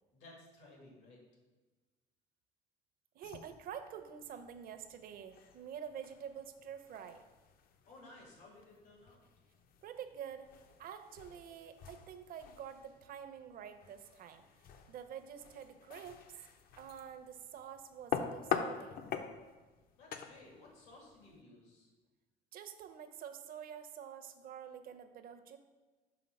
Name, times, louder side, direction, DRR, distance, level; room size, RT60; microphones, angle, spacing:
voice 1, 0.1-1.2 7.9-9.2 20.0-21.9, left 2 dB, 90° left, -1 dB, 2.1 m, -57 dB
voice 2, 3.1-7.2 9.8-10.5 10.8-14.4 14.9-16.2 16.8-19.0 22.5-25.6, right 8 dB, 60° right, 8 dB, 0.6 m, -48 dB
sound 1, 3.2-21.4, left 7 dB, 60° left, 0.5 m, -46 dB
5.8 x 3.8 x 5.2 m, 1.2 s
cardioid pair, 110°, 17 cm